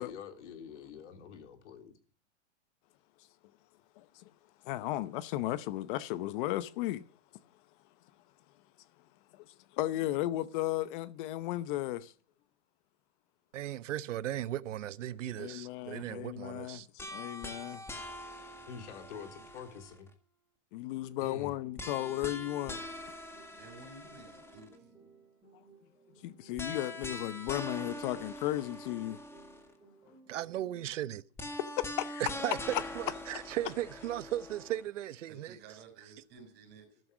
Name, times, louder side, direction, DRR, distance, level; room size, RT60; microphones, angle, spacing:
voice 1, 0.0-1.9 18.7-20.1 21.2-21.5, left 7 dB, 70° left, 3.4 m, -46 dB
voice 2, 4.6-7.0 9.3-9.4 9.7-12.1 15.4-17.8 20.7-22.8 26.2-29.2 31.6-32.2 32.7-32.8 33.3-33.4, left 15 dB, 45° left, 0.8 m, -35 dB
voice 3, 13.5-16.9 30.3-31.2 32.2-35.6, right 13 dB, 85° right, 1.0 m, -36 dB
sound 1, 17.0-20.1 21.8-24.8 26.6-29.7 31.4-34.8, left 1 dB, 5° left, 1.8 m, -43 dB
sound 2, 21.1-31.1, right 5 dB, 10° right, 4.2 m, -61 dB
voice 4, 23.6-24.9 35.3-37.0, right 4 dB, 30° right, 6.0 m, -53 dB
13.5 x 12.0 x 6.2 m
supercardioid pair, 150°, 36 cm